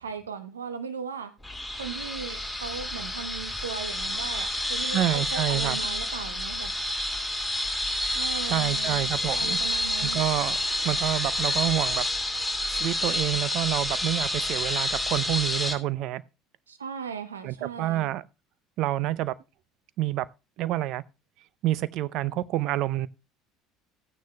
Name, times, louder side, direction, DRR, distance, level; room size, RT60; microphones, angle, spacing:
voice 1, 0.0-1.3 1.7-6.7 8.1-10.2 16.7-18.1, right 6 dB, 90° right, 0.9 m, -37 dB
sound 1, 1.4-15.7, left 1 dB, ahead, 2.4 m, -29 dB
voice 2, 4.9-5.8 8.4-9.6 10.0-10.6 10.8-12.0 12.7-16.2 17.4-18.2 18.8-19.3 20.0-20.3 20.6-21.0 21.6-23.1, right 15 dB, 60° right, 0.6 m, -28 dB
14.5 x 9.4 x 2.3 m
hypercardioid pair, 65°, 0 cm